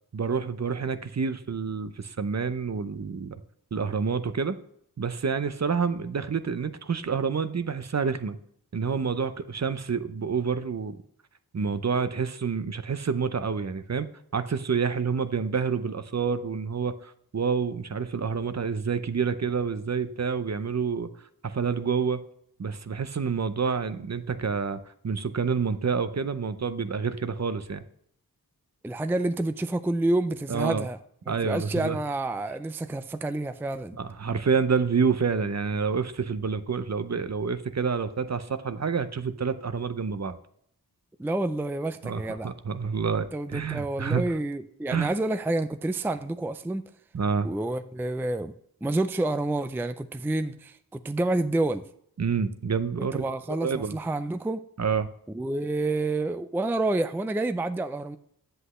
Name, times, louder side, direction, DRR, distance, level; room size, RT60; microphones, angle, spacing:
voice 1, 0.1-3.4 3.7-4.6 5.0-8.4 8.7-11.0 11.5-14.1 14.3-21.1 21.4-22.2 22.6-24.8 25.0-27.8 30.5-30.9 31.3-32.0 34.0-40.4 42.0-44.2 44.9-45.1 47.1-47.5 52.2-54.0 54.8-55.1, right 5 dB, 45° right, 0.6 m, -28 dB
voice 2, 28.8-31.0 31.3-34.0 41.2-42.5 43.3-46.8 47.4-48.5 48.8-51.8 53.0-54.6 55.3-58.2, right 2 dB, 5° right, 0.4 m, -28 dB
7.9 x 7.8 x 3.1 m
wide cardioid pair, 65°, 38 cm